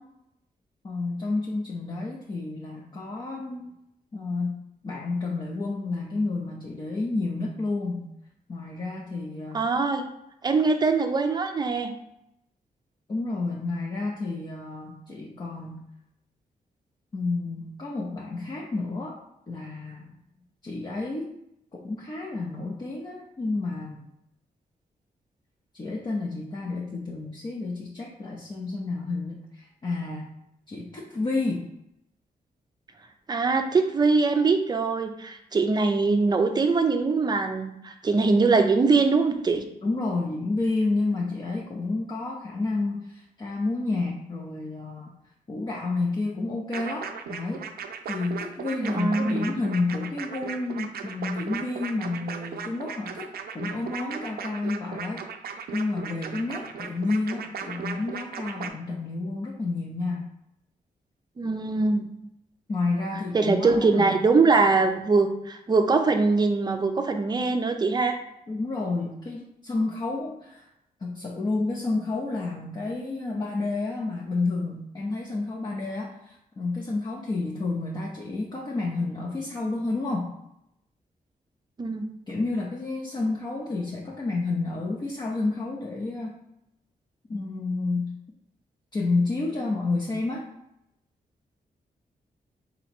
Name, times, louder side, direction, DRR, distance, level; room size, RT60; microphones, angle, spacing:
voice 1, 0.8-3.7 4.1-8.1 8.5-9.7 13.1-15.9 17.1-19.2 19.5-20.1 20.6-21.3 21.7-24.1 25.7-30.3 30.7-31.7 39.8-45.1 45.5-47.7 48.1-55.2 55.7-60.3 62.7-64.2 68.5-70.7 71.0-80.3 82.3-86.4 87.3-88.2 88.9-90.5, left 3 dB, 30° left, -3 dB, 0.6 m, -30 dB
voice 2, 9.5-10.0 10.4-11.9 33.3-39.6 48.7-49.5 61.4-62.1 63.3-68.2 81.8-82.1, right 4 dB, 25° right, 5 dB, 0.5 m, -22 dB
sound 1, 46.7-58.7, right 7 dB, 85° right, 0.4 m, -37 dB
4.0 x 2.9 x 4.3 m, 0.80 s
wide cardioid pair, 155°, 15 cm